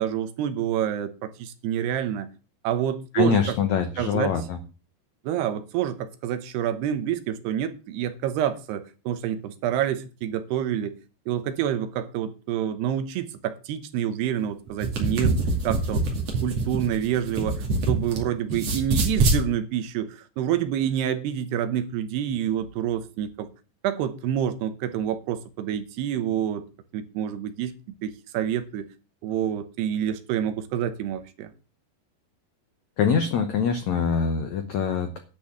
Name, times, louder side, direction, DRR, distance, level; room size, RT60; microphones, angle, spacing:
voice 1, 0.0-2.3 2.6-3.6 4.0-4.3 5.2-10.9 11.3-15.4 15.6-16.0 16.4-23.5 23.8-26.6 26.9-27.7 28.0-28.9 29.2-31.5, right 10 dB, 80° right, 3.0 m, -27 dB
voice 2, 3.1-4.6 33.0-35.2, left 6 dB, 90° left, 1.5 m, -24 dB
sound 1, 14.7-18.2 18.5-19.4, right 3 dB, 40° right, 3.1 m, -24 dB
10.5 x 6.1 x 7.7 m
omnidirectional pair, 4.8 m